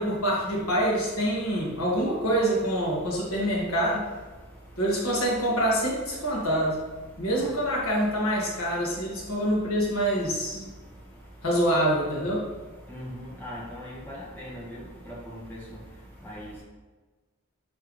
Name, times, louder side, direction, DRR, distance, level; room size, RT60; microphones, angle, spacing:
voice 1, 0.0-4.0 4.8-6.8 7.2-10.7 11.4-12.4, right 1 dB, 85° left, -4 dB, 2.0 m, -26 dB
voice 2, 12.9-14.8 15.1-15.6 16.2-16.5, equal, 10° left, -7 dB, 1.7 m, -39 dB
10.0 x 3.5 x 3.3 m, 1.3 s
head